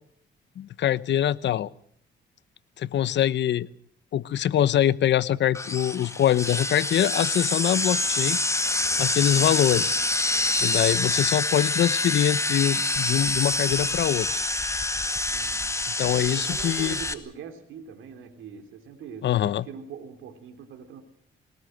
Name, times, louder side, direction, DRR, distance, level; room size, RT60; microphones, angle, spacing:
voice 1, 0.6-1.7 2.8-3.7 4.1-8.4 9.0-10.0 10.6-14.3 16.0-17.0 19.2-19.6, left 11 dB, 65° left, 17 dB, 1.0 m, -24 dB
sound 1, 5.5-17.1, left 2 dB, 15° left, 2.0 m, -26 dB
voice 2, 15.3-15.8 16.1-21.0, right 7 dB, 80° right, 5 dB, 3.2 m, -42 dB
22.0 x 19.5 x 7.9 m, 0.63 s
cardioid pair, 90°, 20 cm